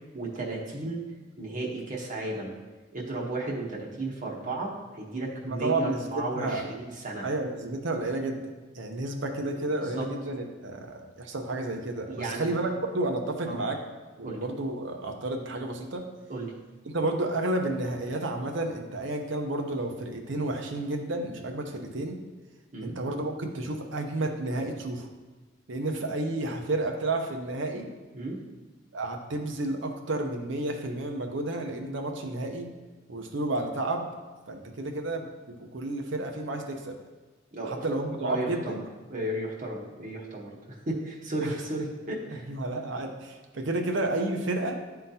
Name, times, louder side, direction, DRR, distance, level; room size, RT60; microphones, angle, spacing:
voice 1, 0.1-1.1 1.4-2.5 2.9-7.2 9.8-10.1 12.1-12.5 13.5-13.6 14.2-14.4 16.3-16.5 22.7-23.0 28.1-28.4 37.5-37.9 38.2-38.8 39.1-42.5, right 2 dB, 40° right, -3 dB, 1.0 m, -34 dB
voice 2, 5.4-6.7 7.2-8.5 8.7-13.8 14.2-16.1 16.8-22.2 22.8-25.1 25.7-27.9 28.9-32.7 33.1-34.1 34.5-36.9 37.6-38.8 41.4-41.5 42.5-44.8, right 2 dB, 65° right, 3 dB, 0.8 m, -31 dB
10.5 x 3.8 x 2.8 m, 1.3 s
head